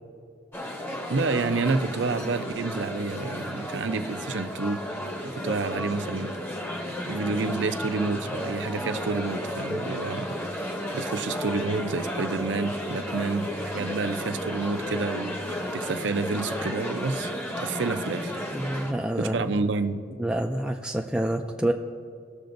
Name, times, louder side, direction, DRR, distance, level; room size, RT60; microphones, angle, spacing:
sound 1, 0.5-18.9, equal, 10° left, 0.8 m, -33 dB
voice 1, 1.1-4.8 5.3-6.3 7.1-10.4 10.9-13.5 13.7-15.4 15.7-17.3 17.6-18.4 19.2-20.0, right 3 dB, 65° right, 9 dB, 0.6 m, -29 dB
voice 2, 18.5-19.6 20.2-21.7, right 1 dB, 5° right, 2 dB, 0.3 m, -27 dB
19.0 x 6.7 x 2.6 m, 2.4 s
head